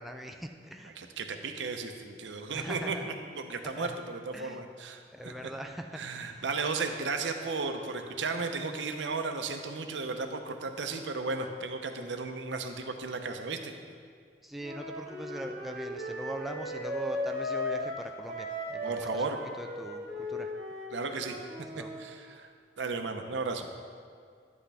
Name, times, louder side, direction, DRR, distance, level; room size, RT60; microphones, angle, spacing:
voice 1, 0.0-1.0 2.5-3.2 3.8-3.9 4.3-4.6 5.1-6.5 14.4-19.2 19.6-20.5 21.7-21.9, equal, ahead, 3 dB, 0.4 m, -41 dB
voice 2, 0.8-3.0 3.3-5.5 5.9-13.7 18.8-19.4 20.9-21.4 21.8-22.5 22.8-23.7, right 4 dB, 85° right, 5 dB, 0.8 m, -35 dB
Wind instrument woodwind instrument, 14.6-22.0, left 1 dB, 55° right, 2.5 m, -37 dB
11.0 x 8.4 x 3.4 m, 2.1 s
head